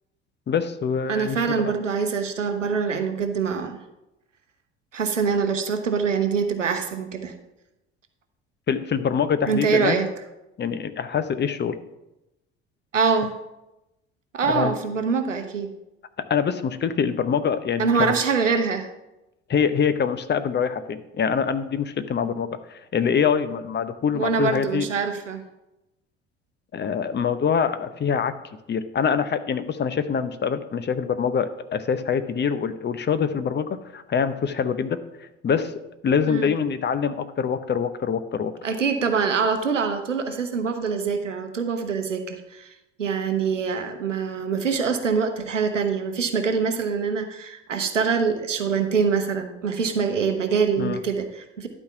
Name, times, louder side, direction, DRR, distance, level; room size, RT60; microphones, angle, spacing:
voice 1, 0.5-1.7 8.7-10.0 10.6-11.7 14.4-14.7 16.3-18.1 19.5-24.9 26.7-28.3 28.7-35.0 35.4-35.7 36.0-38.5 50.8-51.0, left 7 dB, 30° left, 12 dB, 0.7 m, -24 dB
voice 2, 1.1-3.8 4.9-7.3 9.5-10.1 12.9-13.3 14.3-15.7 17.8-18.9 24.1-25.4 36.3-36.5 38.6-51.7, right 5 dB, 90° right, 7 dB, 0.9 m, -24 dB
11.5 x 4.4 x 5.7 m, 0.93 s
figure-of-eight pair, 60°, 36 cm